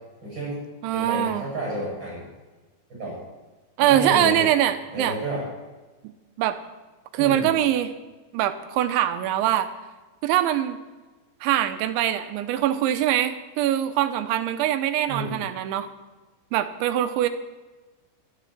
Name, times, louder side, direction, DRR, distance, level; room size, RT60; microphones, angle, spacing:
voice 1, 0.2-0.6 0.9-2.2 3.0-3.1 3.8-4.4 4.9-5.4 7.2-7.5 15.1-15.3, right 1 dB, 25° right, -5 dB, 7.9 m, -30 dB
voice 2, 0.8-1.5 3.8-5.2 6.0-6.1 6.4-6.6 7.1-7.9 8.3-9.7 10.2-10.8 11.4-15.9 16.5-17.3, right 12 dB, 85° right, 10 dB, 3.3 m, -23 dB
25.5 x 11.0 x 4.5 m, 1.2 s
omnidirectional pair, 5.3 m